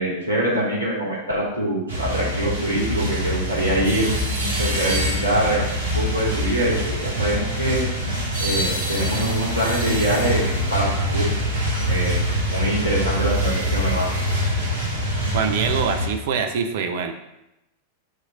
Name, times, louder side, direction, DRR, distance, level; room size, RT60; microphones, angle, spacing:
voice 1, 0.0-4.1 4.6-5.6 5.9-7.9 8.4-10.4 10.7-11.3 11.9-12.2 12.5-14.1, right 1 dB, 85° left, -6 dB, 2.2 m, -24 dB
sound 1, 1.9-16.1, equal, 70° right, 1.4 m, -24 dB
voice 2, 15.3-17.1, right 6 dB, 55° right, 6 dB, 0.5 m, -24 dB
6.4 x 3.2 x 5.0 m, 0.89 s
figure-of-eight pair, 90°, 0 cm